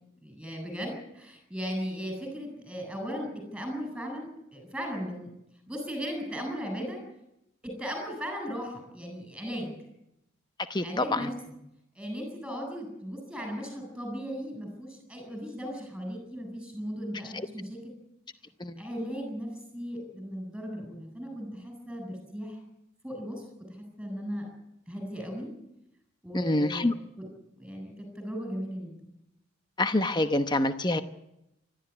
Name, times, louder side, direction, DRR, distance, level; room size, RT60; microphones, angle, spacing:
voice 1, 0.2-5.3 5.7-7.0 7.6-9.7 10.8-11.5 11.9-17.8 18.8-22.6 23.0-23.4 23.7-24.5 24.9-25.5 26.2-27.3 27.6-29.1, equal, 5° right, 3 dB, 8.0 m, -37 dB
voice 2, 10.7-11.3 17.3-17.5 18.6-18.7 26.3-26.9 29.8-31.0, left 2 dB, 20° left, 9 dB, 0.9 m, -26 dB
25.5 x 12.5 x 9.8 m, 0.84 s
head